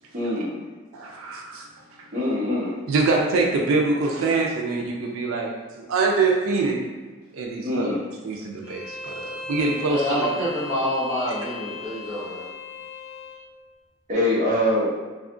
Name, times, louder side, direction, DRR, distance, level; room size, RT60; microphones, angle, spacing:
voice 1, 0.1-0.6 2.1-2.8 7.6-8.0 14.1-14.9, left 1 dB, 35° right, -7 dB, 0.8 m, -23 dB
voice 2, 0.9-1.6 2.9-6.8 7.3-7.9 8.2-10.3, right 3 dB, 85° right, 0 dB, 0.4 m, -24 dB
Bowed string instrument, 8.6-13.4, left 3 dB, 45° left, 0.4 m, -37 dB
voice 3, 9.9-12.5, equal, 10° right, -12 dB, 0.9 m, -27 dB
2.7 x 2.3 x 2.5 m, 1.3 s
head